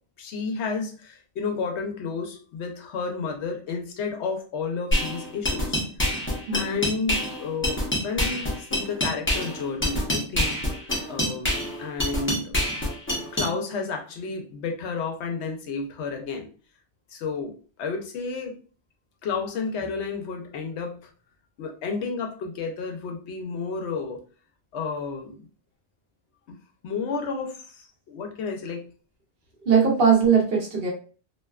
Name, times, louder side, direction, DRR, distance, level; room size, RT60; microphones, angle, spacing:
voice 1, 0.2-5.8 6.5-10.5 11.1-12.6 13.3-16.5 17.1-18.5 19.2-21.1 21.6-24.2 24.7-25.5 26.5-26.6 26.8-27.8 28.1-28.9, left 4 dB, 85° left, 3 dB, 0.9 m, -31 dB
sound 1, 4.9-13.5, left 1 dB, 15° left, 0.6 m, -26 dB
voice 2, 29.7-30.9, right 6 dB, 60° right, -1 dB, 0.9 m, -20 dB
2.6 x 2.2 x 2.3 m, 0.40 s
omnidirectional pair, 1.1 m